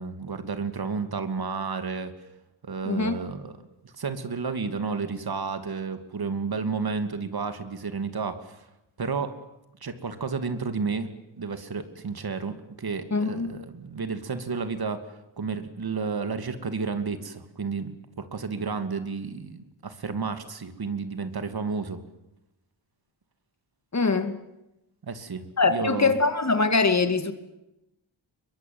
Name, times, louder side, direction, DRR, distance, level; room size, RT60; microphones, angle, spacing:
voice 1, 0.0-2.1 2.6-3.6 3.8-8.7 9.0-9.4 9.8-15.0 15.4-22.0 25.0-26.1, right 5 dB, 55° right, 2.6 m, -31 dB
voice 2, 13.1-13.5 23.9-24.4 25.6-27.3, left 4 dB, 35° left, 2.4 m, -23 dB
23.0 x 22.5 x 9.4 m
cardioid pair, 85°, 45 cm